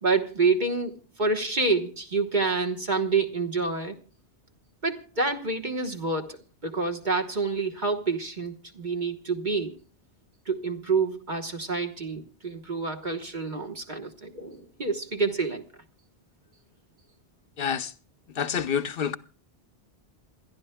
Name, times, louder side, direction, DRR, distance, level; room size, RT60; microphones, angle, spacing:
voice 1, 0.0-3.9 4.8-6.4 6.6-9.8 10.5-15.6, right 4 dB, 45° right, 1.4 m, -28 dB
voice 2, 17.6-17.9 18.4-19.2, left 7 dB, 60° left, 0.9 m, -27 dB
27.5 x 12.0 x 2.2 m
omnidirectional pair, 1.2 m